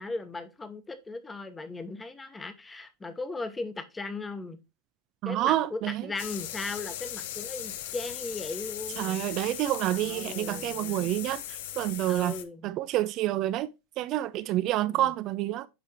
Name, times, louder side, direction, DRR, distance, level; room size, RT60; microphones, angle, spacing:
voice 1, 0.0-4.6 5.2-9.2 9.8-11.1 12.1-12.7 14.9-15.1, left 3 dB, 15° left, 1.0 m, -38 dB
voice 2, 5.2-6.0 9.0-12.4 12.6-15.7, right 14 dB, 45° right, 0.3 m, -28 dB
sound 1, 6.2-12.4, left 11 dB, 65° left, 0.6 m, -38 dB
10.0 x 3.4 x 2.9 m
hypercardioid pair, 95°, 0 cm